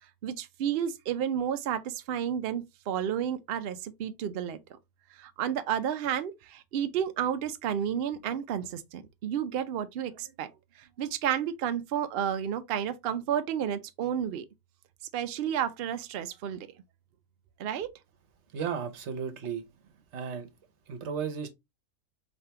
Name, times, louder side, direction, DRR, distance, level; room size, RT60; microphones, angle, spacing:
voice 1, 0.2-4.6 5.2-10.5 10.8-14.5 15.1-16.7 17.6-17.9, right 9 dB, 80° right, 0.5 m, -31 dB
voice 2, 18.5-19.6 20.1-20.5 20.9-21.5, right 7 dB, 55° right, 1.0 m, -34 dB
4.1 x 3.4 x 2.8 m
omnidirectional pair, 1.6 m